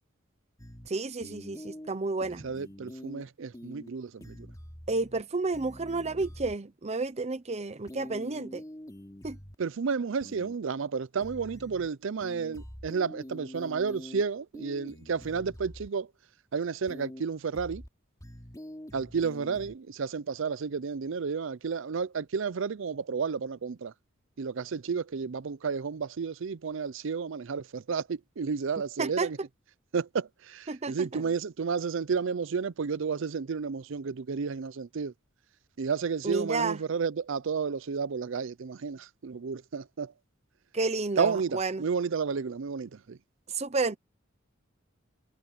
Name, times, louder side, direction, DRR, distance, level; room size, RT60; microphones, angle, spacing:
sound 1, 0.6-0.9 1.2-1.9 2.2-3.2 3.5-3.9 4.2-5.2 5.5-6.5 7.9-9.5 10.2-10.5 11.2-11.9 12.2-14.2 14.5-15.9 16.9-17.2 17.5-17.9 18.2-19.8, equal, 15° left, 3.0 m, -45 dB
voice 1, 0.9-2.4 4.9-8.6 9.2-9.4 29.0-29.3 30.7-31.2 36.2-36.8 40.7-41.8 43.5-44.0, right 3 dB, 35° right, 0.8 m, -31 dB
voice 2, 2.4-4.3 9.6-16.1 16.5-17.8 18.9-23.9 24.4-29.4 29.9-35.1 35.8-40.1 41.2-41.5 41.8-43.2, right 5 dB, 65° right, 0.5 m, -31 dB
head